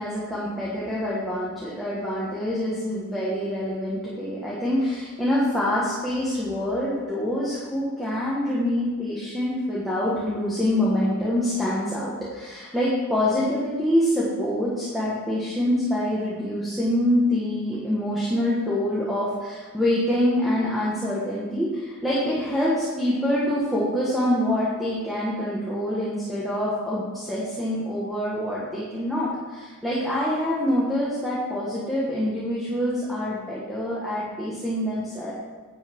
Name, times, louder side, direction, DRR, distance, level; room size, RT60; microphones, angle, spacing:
voice 1, 0.0-35.3, left 1 dB, ahead, -9 dB, 1.5 m, -25 dB
10.0 x 7.6 x 3.7 m, 1.4 s
head